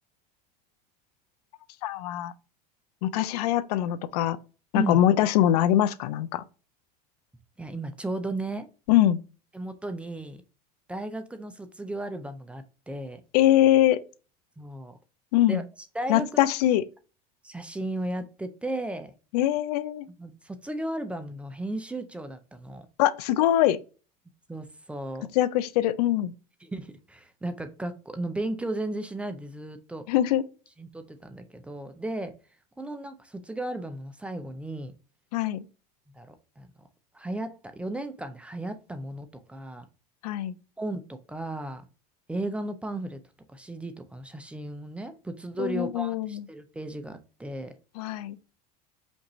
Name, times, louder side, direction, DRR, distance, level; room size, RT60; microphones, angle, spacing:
voice 1, 1.8-2.3 3.0-4.4 4.7-6.4 8.9-9.2 13.3-14.0 15.3-15.6 16.1-16.8 19.3-20.1 23.0-23.8 25.4-26.3 30.1-30.4 35.3-35.6 40.2-40.5 45.6-46.4 48.0-48.4, left 12 dB, 85° left, 0.5 m, -23 dB
voice 2, 7.6-8.7 9.5-10.4 10.9-13.2 14.6-15.0 15.5-16.3 17.4-19.1 20.2-22.9 24.5-25.3 26.6-30.0 30.8-32.3 32.8-34.9 36.1-36.7 37.1-39.9 40.8-41.8 42.3-43.2 43.5-47.7, right 1 dB, 5° right, 0.4 m, -35 dB
5.2 x 2.5 x 3.0 m
supercardioid pair, 135°, 19 cm